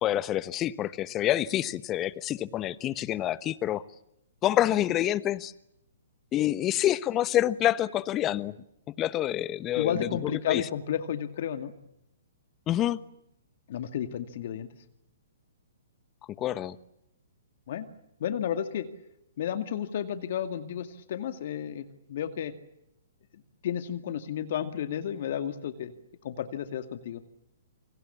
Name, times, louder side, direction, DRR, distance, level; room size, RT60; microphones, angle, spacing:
voice 1, 0.0-3.8 4.4-5.5 6.3-8.6 9.0-10.6 12.7-13.0 16.4-16.8, left 13 dB, 25° left, 16 dB, 1.2 m, -27 dB
voice 2, 9.7-11.7 13.7-14.7 17.7-17.9 18.2-18.9 19.4-22.5 23.6-25.9 26.2-27.2, left 9 dB, 55° left, 9 dB, 2.2 m, -32 dB
28.5 x 26.0 x 7.3 m, 0.81 s
figure-of-eight pair, 125°, 0 cm